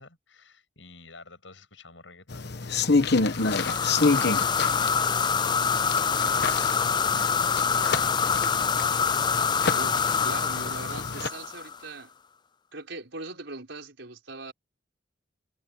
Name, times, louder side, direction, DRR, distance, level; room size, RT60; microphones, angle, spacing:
voice 1, 0.0-8.5, left 3 dB, 80° left, 7.7 m, -50 dB
sound 1, 2.3-11.3, left 3 dB, 60° left, 1.2 m, -29 dB
sound 2, 3.3-11.8, left 6 dB, 25° left, 0.4 m, -26 dB
voice 2, 9.7-12.1 12.7-14.5, right 3 dB, 70° right, 5.0 m, -40 dB
head